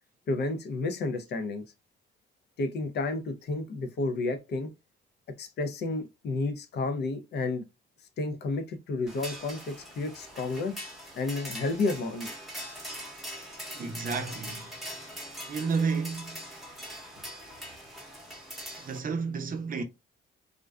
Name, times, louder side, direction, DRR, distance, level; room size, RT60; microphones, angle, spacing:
voice 1, 0.3-1.6 2.6-4.7 5.4-7.6 8.2-10.8 11.2-12.3, left 3 dB, 60° left, 0.5 m, -31 dB
sound 1, 9.1-19.0, equal, ahead, 0.9 m, -42 dB
voice 2, 13.7-14.8 15.5-16.4 18.8-19.8, right 5 dB, 45° right, 0.6 m, -31 dB
2.5 x 2.2 x 2.3 m
cardioid pair, 90°, 20 cm